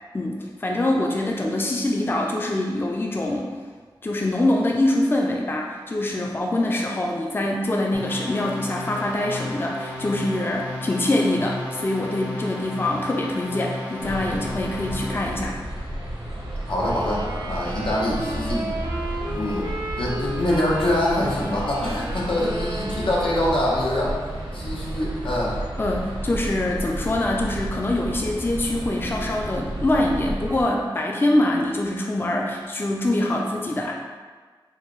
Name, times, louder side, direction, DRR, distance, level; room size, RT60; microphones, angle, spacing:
voice 1, 0.1-3.5 4.0-15.6 25.8-33.9, left 1 dB, 25° left, 0 dB, 0.4 m, -24 dB
sound 1, 7.9-15.5, left 1 dB, 45° left, 1.1 m, -33 dB
sound 2, 14.0-30.6, right 1 dB, 80° right, 0.9 m, -32 dB
voice 2, 16.7-18.8 19.3-24.2 24.5-25.6, left 1 dB, 85° left, -5 dB, 0.9 m, -25 dB
sound 3, 16.7-23.6, right 1 dB, 55° right, 0.6 m, -33 dB
4.6 x 2.2 x 3.0 m, 1.4 s
wide cardioid pair, 85°, 9 cm